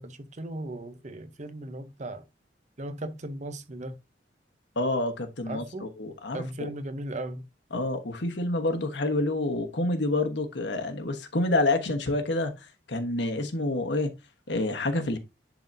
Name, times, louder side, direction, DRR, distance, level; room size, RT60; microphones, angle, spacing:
voice 1, 0.0-2.3 2.8-4.0 5.5-5.9 6.3-7.5, right 1 dB, 40° right, 0.8 m, -37 dB
voice 2, 4.7-6.7 7.7-14.1 14.5-15.2, left 2 dB, 65° left, 1.2 m, -28 dB
10.5 x 4.0 x 2.6 m
head